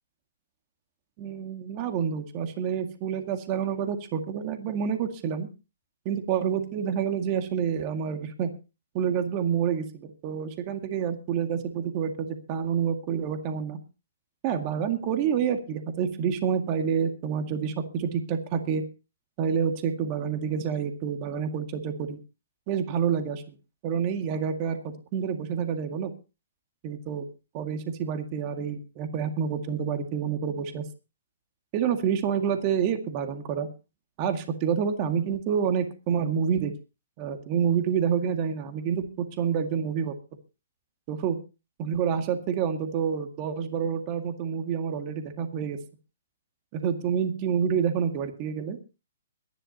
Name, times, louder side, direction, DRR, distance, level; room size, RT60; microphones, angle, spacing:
voice 1, 1.2-5.5 6.1-8.5 8.9-13.8 14.4-18.8 19.4-22.2 22.7-23.6 23.8-26.1 26.8-27.2 27.5-30.9 31.7-33.7 34.2-36.7 37.2-40.1 41.1-41.4 41.8-45.8 46.7-48.8, right 7 dB, 35° right, 6 dB, 2.0 m, -28 dB
23.5 x 11.0 x 2.9 m, 0.31 s
hypercardioid pair, 145°, 0 cm